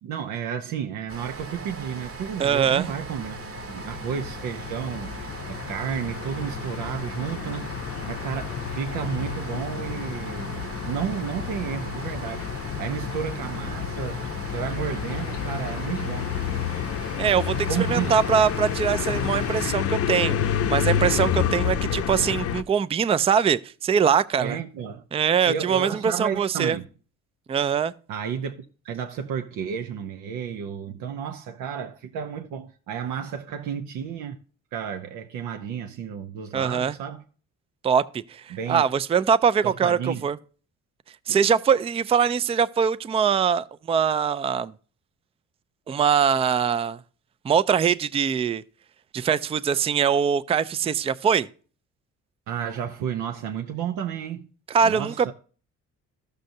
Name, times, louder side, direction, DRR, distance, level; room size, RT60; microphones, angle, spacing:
voice 1, 0.0-5.2 5.5-7.7 8.1-12.5 12.8-16.4 17.7-18.1 24.4-25.0 25.5-26.8 28.1-28.6 28.8-34.4 34.7-37.2 38.5-38.8 39.6-40.2 41.3-41.4 45.9-46.0 52.5-54.5 54.8-55.3, right 8 dB, 90° right, 0.7 m, -32 dB
sound 1, 1.1-19.7, right 3 dB, 50° right, 1.1 m, -39 dB
voice 2, 2.4-2.9 17.2-24.6 25.1-26.8 27.5-27.9 36.5-36.9 37.8-40.4 41.3-44.7 45.9-47.0 47.4-48.6 49.1-51.5 54.7-55.3, right 7 dB, 20° right, 0.3 m, -22 dB
sound 2, 3.1-22.6, left 9 dB, 50° left, 0.6 m, -30 dB
12.5 x 6.5 x 2.6 m
cardioid pair, 90°, 30 cm